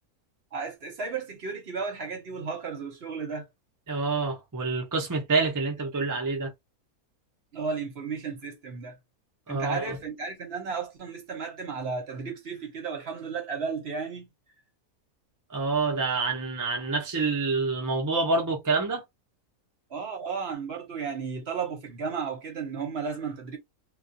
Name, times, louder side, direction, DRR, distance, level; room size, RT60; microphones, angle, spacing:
voice 1, 0.5-3.5 7.5-9.0 9.5-14.3 19.9-23.6, right 5 dB, 50° right, 0.9 m, -34 dB
voice 2, 3.9-6.5 9.5-10.0 15.5-19.0, right 3 dB, 30° right, 0.3 m, -27 dB
2.4 x 2.3 x 2.6 m
omnidirectional pair, 1.5 m